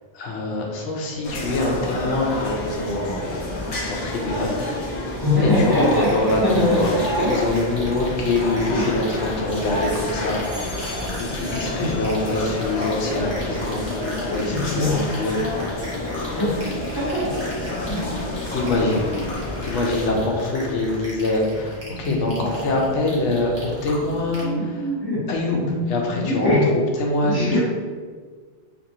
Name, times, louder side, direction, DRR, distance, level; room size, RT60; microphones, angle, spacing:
voice 1, 0.1-3.5 3.8-5.1 5.4-6.9 7.3-15.4 18.1-18.2 18.5-19.1 19.6-24.9 25.3-27.6, left 2 dB, 85° left, 0 dB, 0.9 m, -25 dB
sound 1, 1.2-20.1, left 2 dB, 60° left, 0.5 m, -29 dB
voice 2, 5.2-7.4 8.7-8.9 11.8-11.9 14.5-15.0 16.4-16.6 16.9-17.4 17.9-18.1 18.5-18.6 22.0-22.2 24.4-26.7 27.2-27.6, left 1 dB, 25° left, -9 dB, 0.7 m, -22 dB
sound 2, 5.7-24.4, right 1 dB, 15° right, 0.7 m, -36 dB
sound 3, 10.3-12.6 13.0-13.6, left 1 dB, 60° right, 0.7 m, -43 dB
2.6 x 2.6 x 2.7 m, 1.5 s
omnidirectional pair, 1.2 m